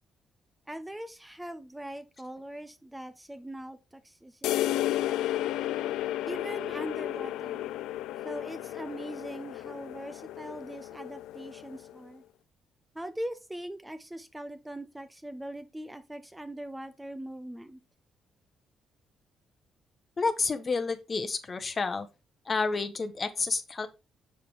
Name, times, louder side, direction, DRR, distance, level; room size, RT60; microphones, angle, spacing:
voice 1, 0.7-3.8 4.0-4.8 6.3-7.7 8.2-12.2 12.9-17.8, right 1 dB, 10° right, 0.7 m, -41 dB
sound 1, 4.4-12.0, left 14 dB, 90° left, 0.3 m, -33 dB
voice 2, 20.2-22.1 22.5-23.9, left 4 dB, 35° left, 1.0 m, -30 dB
6.5 x 5.1 x 3.6 m
cardioid pair, 90°, 0 cm